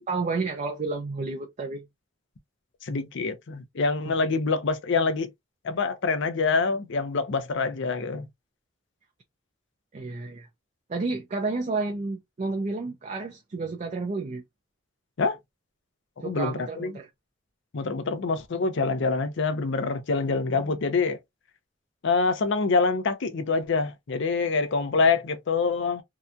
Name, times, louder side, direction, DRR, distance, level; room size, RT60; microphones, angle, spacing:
voice 1, 0.1-1.8 4.1-4.2 9.9-10.5 10.9-14.4 16.2-17.1 20.5-20.6, right 3 dB, 35° right, 0.4 m, -31 dB
voice 2, 2.8-5.3 5.6-8.3 15.2-15.4 16.2-16.9 17.7-21.2 22.0-26.0, left 4 dB, 65° left, 0.5 m, -25 dB
2.8 x 2.2 x 2.4 m
head